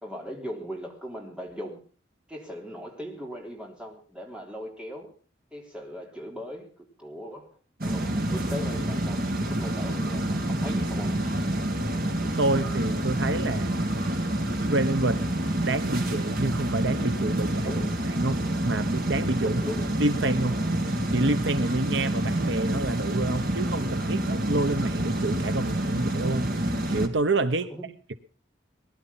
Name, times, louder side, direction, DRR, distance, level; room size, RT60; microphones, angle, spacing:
voice 1, 0.0-1.8 2.3-5.1 5.5-7.5 7.8-11.2 17.6-17.9 19.5-19.9 27.6-27.9, equal, 5° right, 3.6 m, -39 dB
sound 1, 7.8-27.1, right 1 dB, 50° right, 2.4 m, -28 dB
voice 2, 12.4-13.7 14.7-15.3 15.6-17.7 18.1-19.6 20.0-20.6 21.1-26.6 26.9-27.7, right 2 dB, 70° right, 0.9 m, -28 dB
20.0 x 11.5 x 5.6 m
head